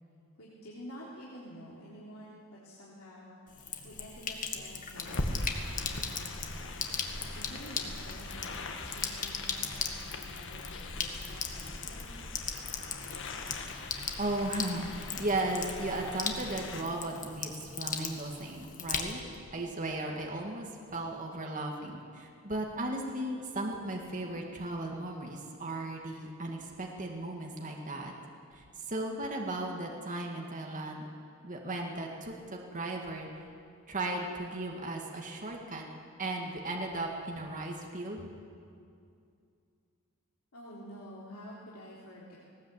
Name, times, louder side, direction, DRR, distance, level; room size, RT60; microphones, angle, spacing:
voice 1, 0.4-6.6 7.3-12.1 40.5-42.4, equal, 75° left, -6 dB, 3.5 m, -49 dB
Sink (filling or washing), 3.5-19.4, left 6 dB, 35° left, 1.7 m, -39 dB
sound 1, 4.9-16.8, left 2 dB, 60° left, 1.7 m, -41 dB
voice 2, 14.2-17.5 17.8-19.2 19.5-28.1 28.5-31.0 31.4-33.3 33.9-35.8 36.2-38.3, right 2 dB, 35° right, 1 dB, 2.1 m, -36 dB
19.5 x 18.5 x 8.4 m, 2.4 s
head